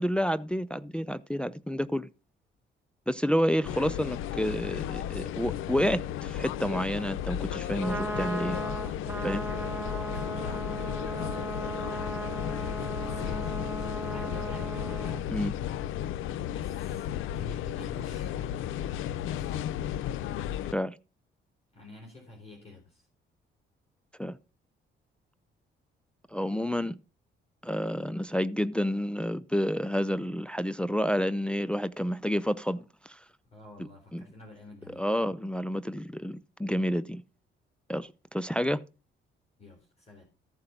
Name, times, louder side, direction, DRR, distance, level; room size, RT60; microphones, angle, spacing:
voice 1, 0.0-2.1 3.1-8.6 9.2-9.5 15.3-15.5 20.7-21.0 24.2-24.4 26.3-27.0 27.6-33.2 33.8-34.2 35.0-37.2 37.9-38.8, equal, 5° left, 0.4 m, -29 dB
sound 1, 3.6-20.7, left 11 dB, 85° left, 0.5 m, -34 dB
Trumpet, 7.6-15.2, right 3 dB, 10° right, 1.1 m, -37 dB
voice 2, 9.4-11.6 12.6-14.8 16.4-18.3 19.2-19.6 21.7-23.0 33.5-35.1 39.6-40.2, left 1 dB, 30° left, 3.8 m, -49 dB
14.0 x 4.8 x 5.7 m
cardioid pair, 90°, 20 cm